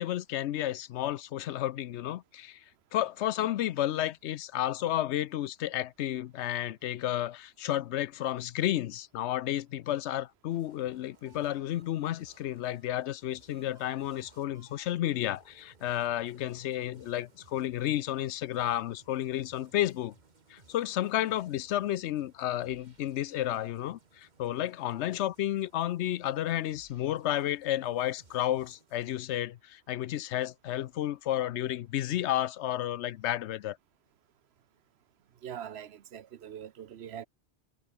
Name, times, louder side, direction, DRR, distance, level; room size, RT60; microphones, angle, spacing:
voice 1, 0.0-2.6 2.9-20.1 20.5-33.8, left 13 dB, 80° left, 0.9 m, -32 dB
sound 1, 10.5-29.1, right 3 dB, 40° right, 2.1 m, -62 dB
voice 2, 35.4-37.3, right 9 dB, 70° right, 1.0 m, -42 dB
omnidirectional pair, 1.2 m